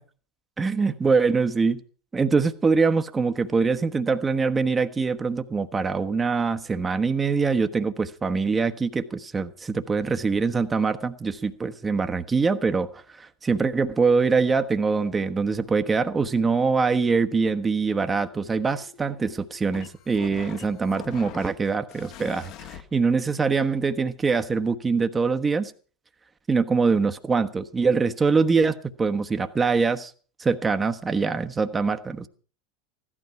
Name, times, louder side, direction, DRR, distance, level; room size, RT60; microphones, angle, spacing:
voice 1, 0.6-1.8 2.1-25.7 26.5-30.1 30.4-32.3, right 4 dB, 20° right, 9 dB, 1.1 m, -24 dB
sound 1, 17.6-22.8, left 9 dB, 50° left, 1.6 m, -45 dB
16.0 x 12.5 x 5.8 m, 0.42 s
figure-of-eight pair, 80°, 0 cm